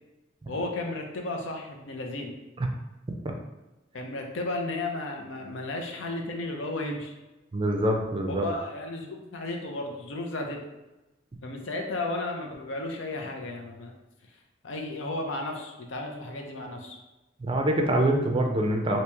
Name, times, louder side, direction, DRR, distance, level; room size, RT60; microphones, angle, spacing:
voice 1, 0.5-2.3 3.9-7.1 8.3-10.6 11.4-14.0 14.6-17.0, left 2 dB, 80° left, 2 dB, 0.6 m, -34 dB
voice 2, 7.5-8.4 17.4-19.0, right 1 dB, 25° right, 2 dB, 0.4 m, -25 dB
3.0 x 2.8 x 3.3 m, 1.0 s
head